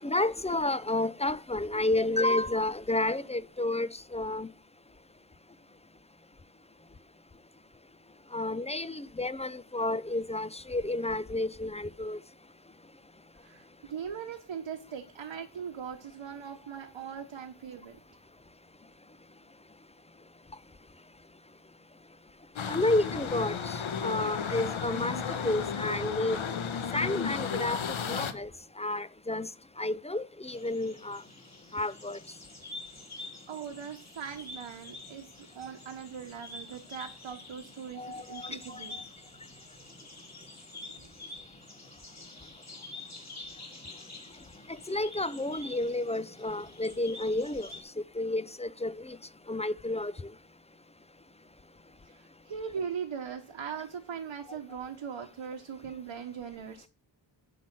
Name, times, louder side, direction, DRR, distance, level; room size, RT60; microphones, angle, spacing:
voice 1, 0.0-4.5 8.3-12.2 22.7-23.7 24.0-25.2 25.4-26.4 26.9-28.5 28.8-29.5 29.8-31.2 31.7-32.2 38.0-38.5 44.9-47.7 48.2-49.2 49.5-50.1, left 2 dB, 15° left, 0.5 m, -30 dB
voice 2, 13.4-18.0 33.1-39.0 40.7-41.1 52.0-56.9, right 7 dB, 85° right, 1.4 m, -40 dB
sound 1, 22.6-28.3, left 6 dB, 80° left, 1.2 m, -33 dB
sound 2, 30.4-47.8, left 2 dB, 35° left, 3.6 m, -48 dB
10.0 x 5.3 x 6.2 m
wide cardioid pair, 90°, 47 cm